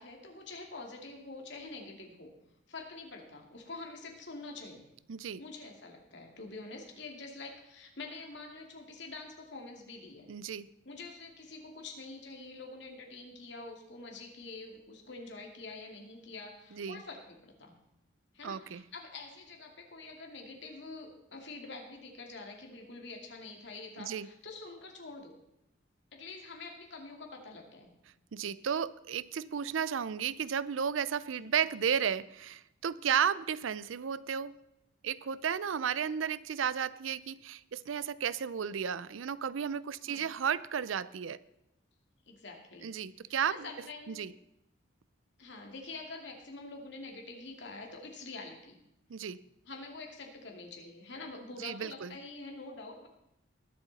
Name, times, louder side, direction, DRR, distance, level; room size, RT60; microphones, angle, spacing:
voice 1, 0.0-2.3 2.7-4.9 5.4-10.3 10.8-17.8 18.3-25.4 26.1-27.9 31.4-31.5 40.0-40.3 42.3-42.9 43.5-44.3 45.4-48.8 49.7-53.1, left 3 dB, 65° left, 1 dB, 2.4 m, -46 dB
voice 2, 5.1-5.4 10.3-10.7 16.7-17.0 18.4-18.8 24.0-24.3 28.3-34.6 35.0-41.4 42.8-43.5 44.1-44.3 49.1-49.4 51.6-52.1, right 7 dB, 85° right, 18 dB, 0.5 m, -33 dB
20.5 x 7.8 x 4.1 m, 0.82 s
head